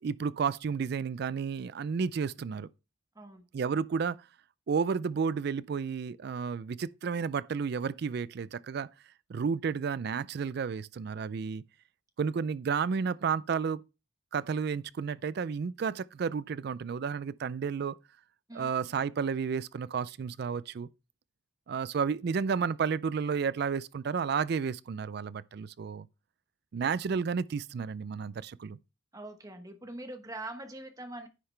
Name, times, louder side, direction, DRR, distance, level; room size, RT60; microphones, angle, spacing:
voice 1, 0.0-2.7 3.5-4.2 4.7-8.9 9.3-11.6 12.2-13.8 14.3-18.0 18.5-20.9 21.7-26.1 26.7-28.8, right 6 dB, 55° right, 0.3 m, -32 dB
voice 2, 29.1-31.3, right 2 dB, 20° right, 1.1 m, -43 dB
10.0 x 5.7 x 3.3 m
head